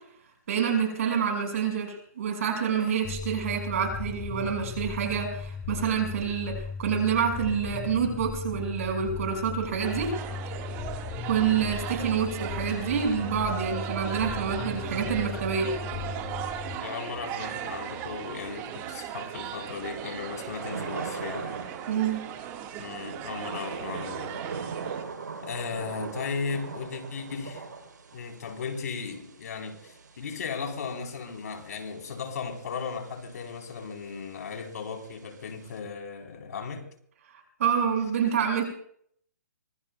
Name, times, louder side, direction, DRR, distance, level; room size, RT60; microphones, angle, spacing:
voice 1, 0.5-10.1 11.3-15.7 21.9-22.2 37.6-38.6, right 7 dB, 50° right, 5.7 m, -27 dB
sound 1, 3.0-16.8, left 6 dB, 10° left, 0.7 m, -37 dB
sound 2, 9.8-25.0, right 10 dB, 25° right, 1.7 m, -38 dB
voice 2, 15.9-21.5 22.8-24.5 25.4-27.6 28.1-36.9 38.0-38.2, left 5 dB, 60° left, 4.0 m, -36 dB
Thunder / Rain, 17.6-35.8, right 5 dB, 85° right, 3.7 m, -43 dB
25.0 x 21.0 x 2.3 m
hypercardioid pair, 150°, 10 cm